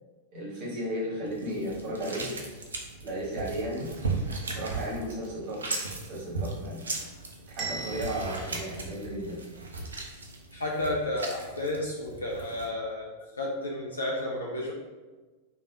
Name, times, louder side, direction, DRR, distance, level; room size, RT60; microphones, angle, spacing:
voice 1, 0.3-2.3 3.0-3.9 4.5-5.6 6.0-6.8 7.5-9.4, equal, 45° right, -5 dB, 1.1 m, -34 dB
sound 1, 1.3-12.7, right 3 dB, 75° right, 0.4 m, -37 dB
Bell, 7.6-9.6, right 4 dB, 20° right, 0.8 m, -41 dB
voice 2, 10.5-13.1 13.4-14.7, left 1 dB, 75° left, -2 dB, 0.3 m, -31 dB
3.2 x 2.3 x 2.7 m, 1.3 s
figure-of-eight pair, 90°, 0 cm